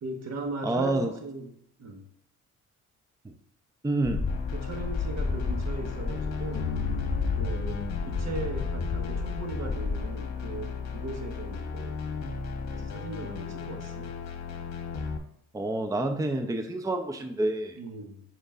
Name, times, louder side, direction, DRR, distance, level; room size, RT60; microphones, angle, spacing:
voice 1, 0.0-2.0 4.5-6.7 7.3-12.0 12.7-14.1 17.8-18.2, right 3 dB, 60° right, 4 dB, 1.4 m, -38 dB
voice 2, 0.6-1.1 3.2-3.3 3.8-4.3 15.5-17.8, right 2 dB, 10° right, 5 dB, 0.7 m, -28 dB
sound 1, 4.1-10.1, left 4 dB, 20° left, 1.5 m, -31 dB
sound 2, 4.3-15.2, left 5 dB, 65° left, 1.2 m, -36 dB
sound 3, 6.6-9.5, left 6 dB, 80° left, 0.5 m, -37 dB
8.0 x 6.0 x 2.5 m, 0.70 s
cardioid pair, 90°, 30 cm